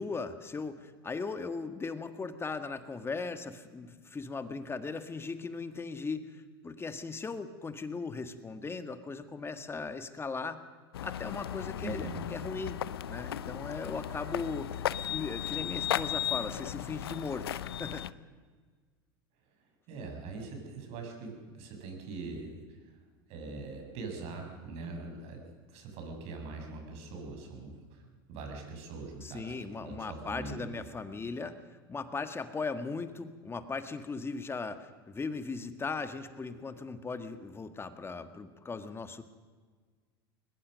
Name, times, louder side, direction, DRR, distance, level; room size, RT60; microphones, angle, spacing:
voice 1, 0.0-10.6 11.0-12.8 13.1-18.0 29.2-31.6 31.9-39.2, left 4 dB, 20° left, 9 dB, 1.8 m, -38 dB
sound 1, 10.9-18.1, left 11 dB, 85° left, 0.7 m, -36 dB
voice 2, 11.8-12.2 19.9-22.8 23.3-25.4 25.7-28.0 28.3-30.7, right 3 dB, 55° right, 3 dB, 6.8 m, -42 dB
21.5 x 21.0 x 6.5 m, 1.5 s
hypercardioid pair, 90°, 12 cm